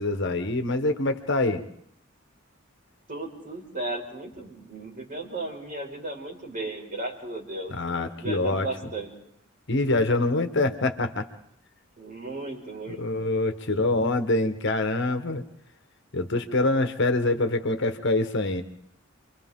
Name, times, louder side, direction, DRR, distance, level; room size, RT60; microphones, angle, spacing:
voice 1, 0.0-1.6 7.7-8.7 9.7-11.3 12.9-15.4 16.1-18.6, left 2 dB, 60° left, 8 dB, 1.3 m, -25 dB
voice 2, 3.1-7.8 8.2-9.1 12.0-13.0, right 2 dB, 40° right, -1 dB, 5.3 m, -35 dB
29.0 x 24.0 x 3.7 m, 0.69 s
head